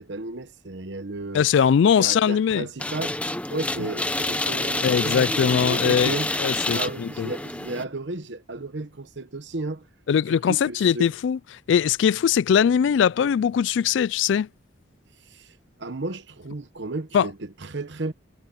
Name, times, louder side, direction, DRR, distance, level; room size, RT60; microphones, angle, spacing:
voice 1, 0.0-3.2 3.5-6.3 6.7-9.9 10.3-11.1 15.3-18.1, right 2 dB, 60° right, 1.0 m, -34 dB
voice 2, 1.3-2.7 4.8-6.1 6.4-7.3 10.1-11.4 11.7-14.5 17.1-17.3, left 7 dB, 65° left, 0.3 m, -21 dB
sound 1, 2.8-7.8, left 2 dB, 5° left, 0.8 m, -27 dB
head